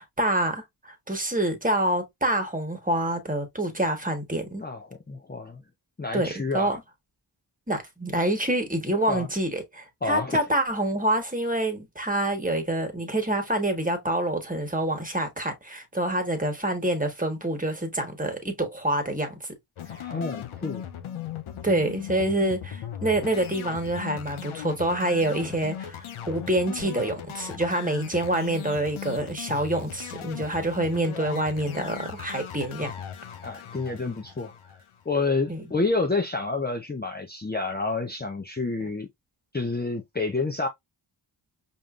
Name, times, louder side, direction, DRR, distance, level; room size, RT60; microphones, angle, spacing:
voice 1, 0.0-4.6 6.1-6.3 6.5-6.8 7.7-19.5 21.6-26.0 26.3-32.9 35.5-35.6, right 1 dB, 15° right, 1.4 m, -27 dB
voice 2, 4.6-5.6 6.0-6.8 9.1-9.3 10.0-10.4 19.9-20.8 33.4-34.5 35.1-39.1 39.5-40.7, left 3 dB, 20° left, 0.7 m, -29 dB
sound 1, 19.8-35.1, left 10 dB, 80° left, 0.7 m, -38 dB
5.2 x 2.7 x 2.4 m
cardioid pair, 45°, 49 cm